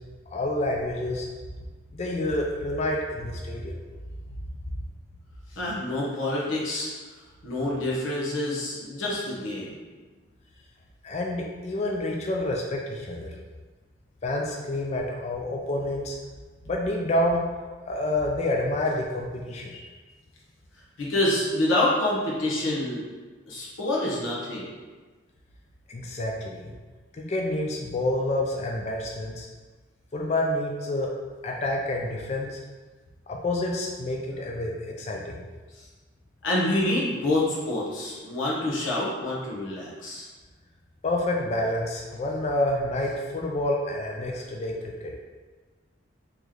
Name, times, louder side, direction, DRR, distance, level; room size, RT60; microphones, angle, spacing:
voice 1, 0.3-1.3 1.9-3.7 11.0-13.4 14.2-16.2 16.7-17.4 17.9-19.9 25.9-26.7 27.1-29.5 30.1-31.1 31.4-32.6 33.3-35.5 41.0-45.1, left 1 dB, 35° left, 0 dB, 0.4 m, -28 dB
voice 2, 5.5-6.9 7.4-9.7 21.0-23.0 23.5-24.7 35.8-35.9 36.4-40.3, left 1 dB, 80° left, -6 dB, 0.9 m, -27 dB
3.2 x 3.0 x 3.7 m, 1.3 s
head